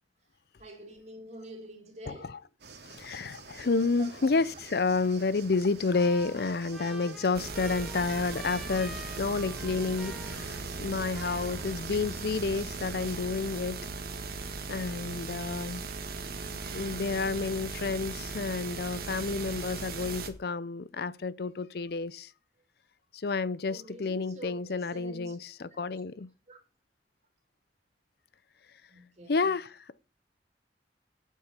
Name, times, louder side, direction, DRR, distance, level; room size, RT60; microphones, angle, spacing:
voice 1, 0.6-2.4 4.0-4.3 6.8-7.3 13.1-13.2 23.7-25.4 26.5-26.6 28.9-29.5, right 1 dB, 40° right, 2.7 m, -47 dB
voice 2, 2.1-2.4 2.8-13.8 14.3-15.8 16.7-22.3 23.1-26.3 29.3-30.0, left 4 dB, 60° left, 0.5 m, -30 dB
sound 1, 2.6-13.2, right 4 dB, 75° right, 2.2 m, -49 dB
Trumpet, 5.9-10.9 11.1-12.1, left 1 dB, ahead, 2.0 m, -47 dB
sound 2, 7.3-20.3, right 4 dB, 55° right, 1.6 m, -38 dB
8.9 x 8.4 x 5.6 m
head